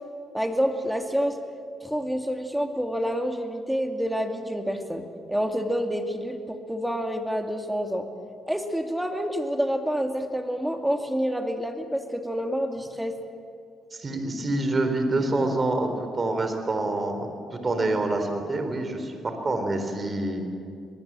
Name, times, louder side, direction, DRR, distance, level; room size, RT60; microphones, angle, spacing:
voice 1, 0.3-1.4 1.8-8.1 8.5-13.1, equal, 5° right, 4 dB, 2.3 m, -28 dB
voice 2, 13.9-20.6, right 2 dB, 30° right, 6 dB, 4.0 m, -27 dB
23.5 x 20.0 x 7.6 m, 2.3 s
cardioid pair, 90°, 0 cm